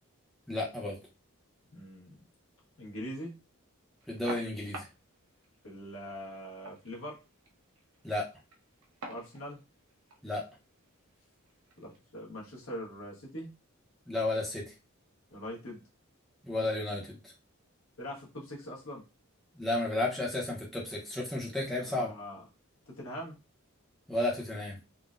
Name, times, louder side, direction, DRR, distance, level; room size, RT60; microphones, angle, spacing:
voice 1, 0.5-1.0 4.1-4.9 8.0-8.3 10.2-10.4 14.1-14.6 16.4-17.2 19.6-22.1 24.1-24.8, left 2 dB, ahead, -4 dB, 0.6 m, -32 dB
voice 2, 1.7-2.2 2.8-3.3 5.6-7.2 9.1-9.6 11.8-13.5 15.3-15.8 18.0-19.0 21.8-22.4 22.9-23.4, equal, 75° left, -3 dB, 1.3 m, -42 dB
sound 1, 4.0-12.0, right 2 dB, 80° right, 0.7 m, -50 dB
3.7 x 2.1 x 2.5 m, 0.28 s
head